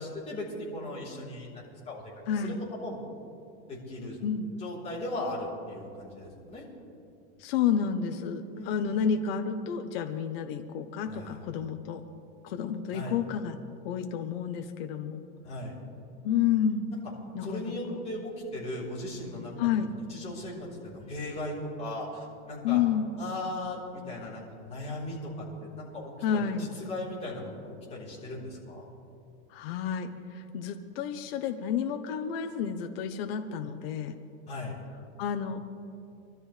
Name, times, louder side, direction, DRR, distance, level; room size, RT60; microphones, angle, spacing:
voice 1, 0.0-2.0 2.4-2.6 2.8-3.0 3.7-4.2 4.6-6.6 8.5-9.0 11.0-11.4 12.9-13.2 15.4-15.8 17.4-19.8 20.1-22.8 23.2-28.9 34.5-34.7, left 1 dB, 20° left, -6 dB, 3.7 m, -38 dB
voice 2, 2.3-2.6 4.2-4.5 7.4-12.1 12.4-13.6 13.8-15.2 16.2-16.9 17.3-18.0 19.6-19.9 22.6-23.1 26.2-26.7 29.5-34.2 35.2-35.6, left 8 dB, 55° left, 6 dB, 0.9 m, -30 dB
24.0 x 13.0 x 3.3 m, 2.7 s
supercardioid pair, 155°, 36 cm